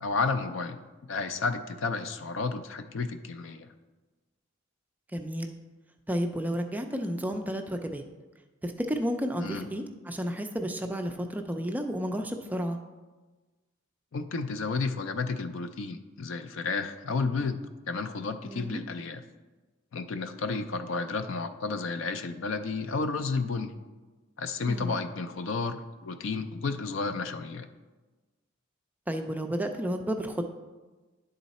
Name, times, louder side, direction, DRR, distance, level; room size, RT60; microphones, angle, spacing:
voice 1, 0.0-3.7 9.4-9.6 14.1-17.6 17.9-19.2 19.9-23.7 24.4-27.7, left 4 dB, 65° left, 9 dB, 0.5 m, -32 dB
voice 2, 5.1-5.5 6.1-8.0 8.6-12.8 18.4-18.8 24.7-24.9 29.1-30.4, equal, 10° right, 4 dB, 0.4 m, -32 dB
10.0 x 3.9 x 4.1 m, 1.3 s
head